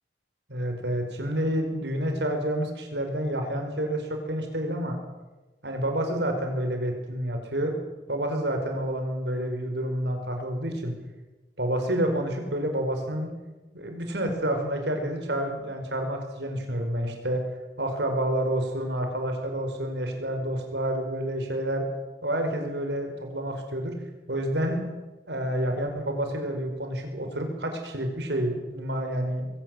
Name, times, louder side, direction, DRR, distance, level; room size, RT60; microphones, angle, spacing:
voice 1, 0.5-5.0 5.6-7.7 8.1-10.9 11.6-13.3 13.7-17.4 17.8-21.8 22.2-23.9 24.3-24.9 25.3-29.5, right 1 dB, 70° right, 4 dB, 5.0 m, -29 dB
21.5 x 17.5 x 8.0 m, 1.2 s
head